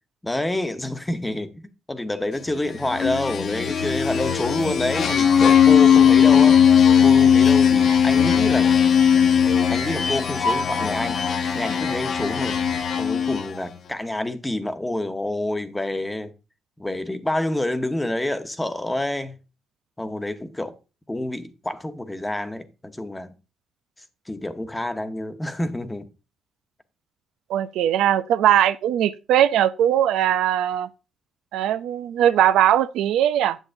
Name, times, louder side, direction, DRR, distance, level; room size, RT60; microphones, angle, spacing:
voice 1, 0.2-6.6 7.0-8.7 9.7-11.2 11.5-12.6 13.0-16.3 16.8-19.4 20.0-20.7 21.1-23.3 24.3-26.1, left 1 dB, 10° left, 0.9 m, -28 dB
sound 1, 2.8-13.7, left 8 dB, 60° left, 1.0 m, -18 dB
voice 2, 27.5-30.9 31.5-33.6, right 11 dB, 85° right, 0.4 m, -20 dB
8.9 x 7.2 x 2.6 m
cardioid pair, 90°, 0 cm